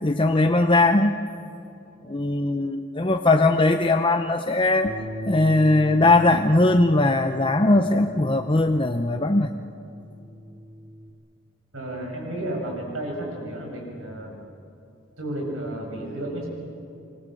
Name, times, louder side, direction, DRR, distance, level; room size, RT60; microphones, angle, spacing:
voice 1, 0.0-1.2 2.0-4.9 5.3-9.5, left 2 dB, 25° left, 6 dB, 0.8 m, -20 dB
Bass guitar, 4.9-11.1, right 1 dB, 65° right, 3.0 m, -39 dB
voice 2, 11.7-14.3 15.2-16.5, right 1 dB, 85° right, 1 dB, 7.3 m, -32 dB
28.5 x 24.5 x 7.8 m, 2.7 s
head